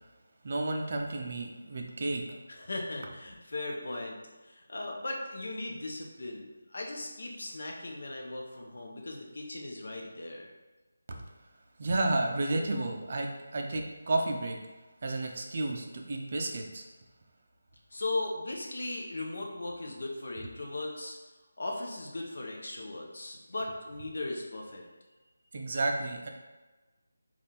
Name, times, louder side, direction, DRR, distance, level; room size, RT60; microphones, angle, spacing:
voice 1, 0.4-2.4 11.1-11.2 11.8-14.6 15.0-16.8 25.5-26.3, right 2 dB, 40° right, 2 dB, 0.4 m, -32 dB
voice 2, 2.6-4.2 4.4-10.5 17.9-21.2 21.6-24.8, left 2 dB, 60° left, 0 dB, 0.8 m, -38 dB
3.5 x 2.4 x 4.2 m, 1.2 s
figure-of-eight pair, 175°, 0 cm